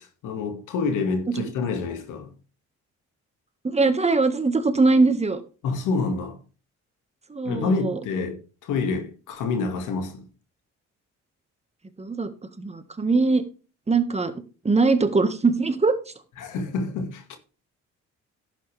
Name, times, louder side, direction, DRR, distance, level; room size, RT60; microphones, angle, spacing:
voice 1, 0.0-2.3 5.6-6.4 7.4-10.3 16.4-17.4, left 4 dB, 85° left, 2.1 m, -28 dB
voice 2, 3.6-5.4 7.3-8.0 12.0-12.3 12.6-13.4 13.9-14.3 14.6-16.0, right 3 dB, 20° right, 1.7 m, -21 dB
11.0 x 8.5 x 3.4 m
cardioid pair, 90°, 30 cm